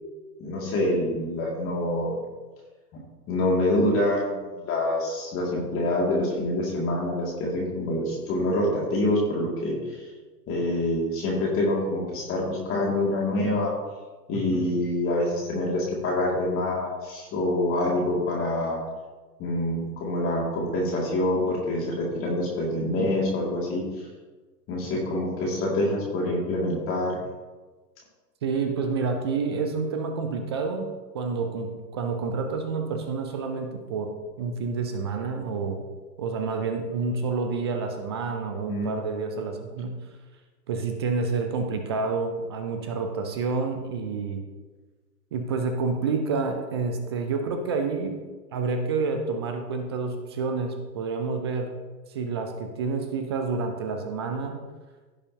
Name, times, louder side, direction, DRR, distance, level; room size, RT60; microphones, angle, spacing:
voice 1, 0.4-2.2 3.3-10.0 10.5-13.7 14.3-18.8 19.4-23.8 24.7-27.2 38.7-39.0, left 1 dB, 25° left, -2 dB, 2.4 m, -26 dB
voice 2, 14.3-14.7 28.4-35.8 36.2-40.1 40.7-44.4 45.3-48.2 48.5-51.8 52.1-54.6, right 4 dB, 20° right, 5 dB, 0.4 m, -29 dB
16.0 x 6.9 x 2.9 m, 1.3 s
figure-of-eight pair, 110°, 50 cm